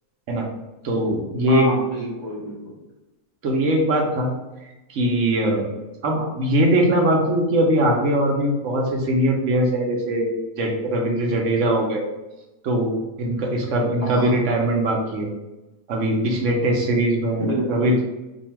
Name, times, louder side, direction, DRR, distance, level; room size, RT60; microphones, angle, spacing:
voice 1, 0.8-1.7 3.4-4.3 4.9-5.7 6.0-12.0 12.6-15.3 15.9-18.0, right 1 dB, 60° right, 0 dB, 0.9 m, -21 dB
voice 2, 1.5-2.7 6.2-6.3 14.0-14.4 17.4-17.8, equal, 35° right, -6 dB, 0.6 m, -28 dB
2.7 x 2.6 x 4.3 m, 1.0 s
omnidirectional pair, 1.7 m